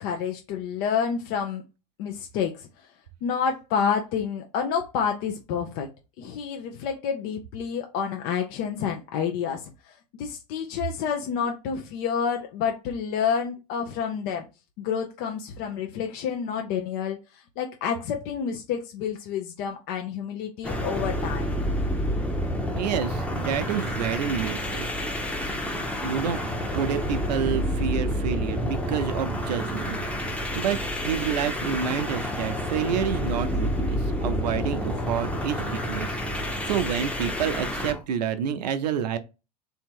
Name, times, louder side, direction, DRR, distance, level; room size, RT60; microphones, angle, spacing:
voice 1, 0.0-1.6 2.0-2.9 3.2-5.9 6.2-14.4 14.8-21.5, left 7 dB, 60° left, 0.7 m, -29 dB
sound 1, 20.6-38.0, equal, 5° left, 0.8 m, -29 dB
voice 2, 22.7-24.9 26.0-26.4 26.7-30.8 31.0-39.2, right 8 dB, 85° right, 0.6 m, -29 dB
3.5 x 2.8 x 4.5 m
hypercardioid pair, 95°, 20 cm